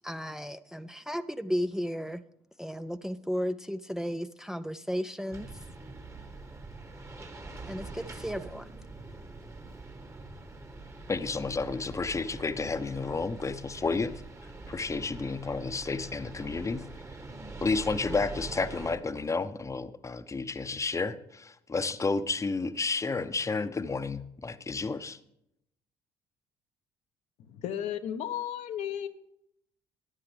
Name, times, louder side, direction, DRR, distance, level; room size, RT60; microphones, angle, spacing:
voice 1, 0.0-2.2 2.6-5.6 7.7-8.7, equal, 5° right, 9 dB, 0.5 m, -34 dB
sound 1, 5.3-19.0, right 3 dB, 25° right, 1.4 m, -44 dB
voice 2, 11.1-14.1 14.7-16.9 17.6-25.2, left 4 dB, 25° left, 12 dB, 0.9 m, -31 dB
voice 3, 27.5-29.1, left 10 dB, 65° left, 8 dB, 0.9 m, -34 dB
14.0 x 9.5 x 3.4 m, 0.76 s
hypercardioid pair, 60°, 13 cm